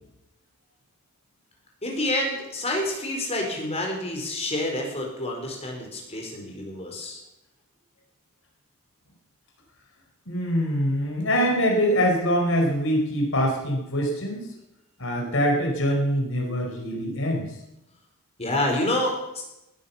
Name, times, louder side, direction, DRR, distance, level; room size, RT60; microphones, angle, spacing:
voice 1, 1.8-7.2 18.4-19.4, left 1 dB, 30° left, 1 dB, 4.5 m, -28 dB
voice 2, 10.3-14.5 15.0-17.5, equal, 60° left, 0 dB, 4.6 m, -24 dB
19.0 x 10.0 x 7.3 m, 0.91 s
head